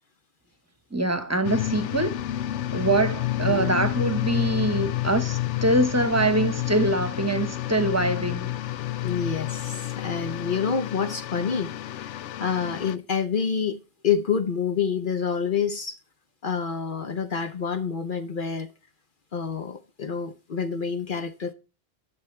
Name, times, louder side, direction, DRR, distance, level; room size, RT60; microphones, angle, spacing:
voice 1, 0.9-2.1 2.7-8.5, right 2 dB, 15° right, 1.1 m, -24 dB
sound 1, 1.4-12.9, left 14 dB, 90° left, 0.9 m, -29 dB
voice 2, 9.0-13.8 14.0-16.0 16.4-18.7 19.3-21.5, left 6 dB, 50° left, 0.9 m, -28 dB
12.0 x 6.1 x 3.2 m
omnidirectional pair, 1.2 m